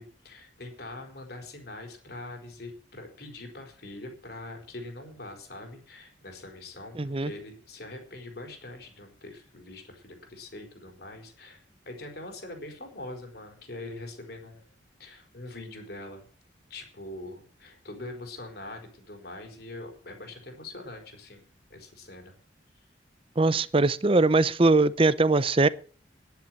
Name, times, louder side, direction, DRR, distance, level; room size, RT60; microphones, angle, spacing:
voice 1, 0.0-14.7 15.0-16.2 16.7-22.3 23.5-23.6, left 2 dB, 60° left, 4.3 m, -43 dB
voice 2, 7.0-7.3 23.4-25.7, right 3 dB, 30° right, 0.6 m, -21 dB
10.5 x 10.5 x 7.7 m
head